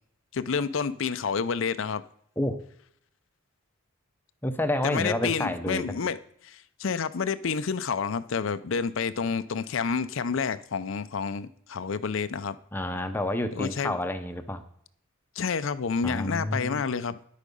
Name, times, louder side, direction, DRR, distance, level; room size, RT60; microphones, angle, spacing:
voice 1, 0.3-2.0 4.8-6.2 6.4-12.6 13.5-14.0 15.4-17.2, left 5 dB, 60° left, 13 dB, 0.5 m, -29 dB
voice 2, 4.4-6.0 12.7-14.6 16.0-16.9, left 1 dB, 10° left, 8 dB, 0.7 m, -29 dB
10.0 x 8.3 x 5.3 m, 0.66 s
head